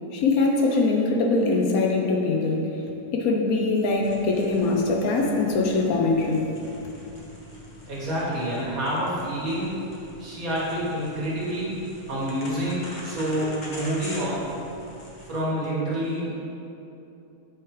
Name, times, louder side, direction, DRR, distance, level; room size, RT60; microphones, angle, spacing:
voice 1, 0.1-2.8 3.1-6.5, left 3 dB, 70° left, 0 dB, 1.0 m, -22 dB
sound 1, 3.8-15.4, left 1 dB, 35° left, 0.9 m, -44 dB
voice 2, 7.9-9.8 10.2-11.7 12.1-14.4 15.3-16.3, right 1 dB, 60° right, -8 dB, 2.0 m, -28 dB
7.7 x 4.7 x 3.2 m, 2.9 s
omnidirectional pair, 1.7 m